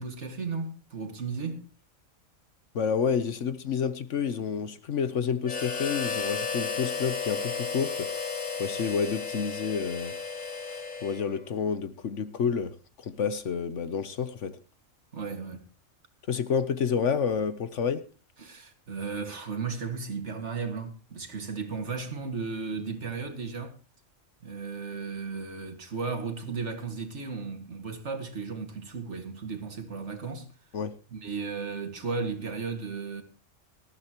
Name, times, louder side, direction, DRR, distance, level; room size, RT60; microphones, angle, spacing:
voice 1, 0.0-1.6 15.1-15.6 18.4-23.8 24.4-30.5 31.1-33.2, right 4 dB, 60° right, 2.4 m, -35 dB
voice 2, 2.7-8.1 8.6-10.2 11.0-14.6 16.3-18.1 30.7-31.0, left 6 dB, 65° left, 1.2 m, -29 dB
Harmonica, 5.4-11.5, left 5 dB, 80° left, 2.3 m, -33 dB
19.5 x 14.0 x 3.0 m
omnidirectional pair, 1.4 m